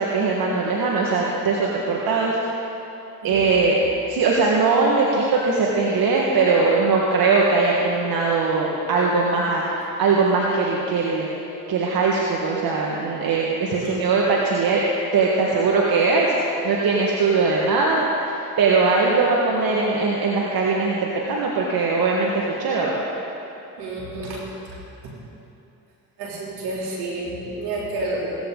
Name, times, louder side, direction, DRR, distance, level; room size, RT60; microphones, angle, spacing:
voice 1, 0.0-2.4 3.2-3.8 4.1-11.3 11.7-14.8 15.1-18.0 18.3-21.0 21.3-23.0, right 4 dB, 65° right, -3 dB, 1.8 m, -20 dB
voice 2, 13.7-14.0 23.8-24.4 24.7-25.1 26.2-28.4, right 2 dB, 85° right, -4 dB, 3.5 m, -30 dB
17.5 x 15.0 x 4.0 m, 2.8 s
supercardioid pair, 60°, 38 cm